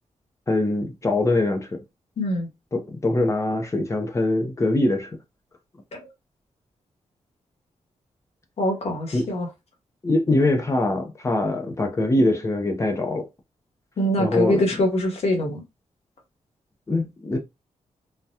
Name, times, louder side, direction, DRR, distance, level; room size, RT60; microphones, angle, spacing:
voice 1, 0.5-1.8 2.7-5.1 9.1-9.3 10.0-13.3 14.2-14.6 16.9-17.4, left 2 dB, 25° left, 0.5 m, -23 dB
voice 2, 2.2-2.5 5.9-6.1 8.6-9.5 14.0-15.6, left 1 dB, 55° left, 1.0 m, -24 dB
3.4 x 2.2 x 2.7 m
wide cardioid pair, 165°, 12 cm